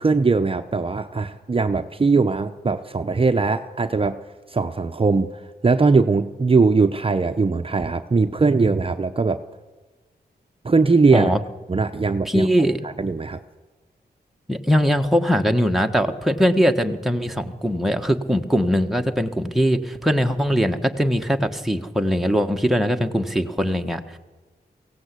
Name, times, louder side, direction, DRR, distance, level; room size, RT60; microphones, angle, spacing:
voice 1, 0.0-4.2 4.5-9.4 10.6-11.3 11.7-12.5 12.8-13.4, right 4 dB, 30° right, 7 dB, 0.8 m, -20 dB
voice 2, 12.2-12.8 14.5-24.2, equal, ahead, 4 dB, 1.4 m, -21 dB
23.5 x 17.0 x 8.3 m, 1.3 s
wide cardioid pair, 95°, 17 cm